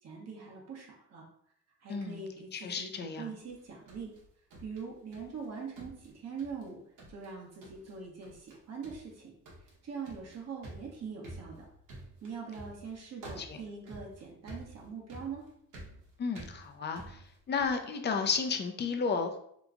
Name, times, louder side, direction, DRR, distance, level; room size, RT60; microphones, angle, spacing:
voice 1, 0.0-1.3 1.8-4.1 4.6-6.8 7.1-9.3 9.8-11.7 12.2-15.5, right 5 dB, 55° right, -1 dB, 1.1 m, -43 dB
voice 2, 1.9-2.2 2.5-3.3 13.4-13.6 16.2-17.2 17.5-19.4, left 5 dB, 35° left, 6 dB, 0.5 m, -32 dB
sound 1, 3.5-5.5 5.8-6.7 7.0-7.3 7.6-8.0 8.2-8.6 8.8-17.8, right 2 dB, 75° right, 1.1 m, -50 dB
2.9 x 2.3 x 3.7 m, 0.71 s
cardioid pair, 90°, 30 cm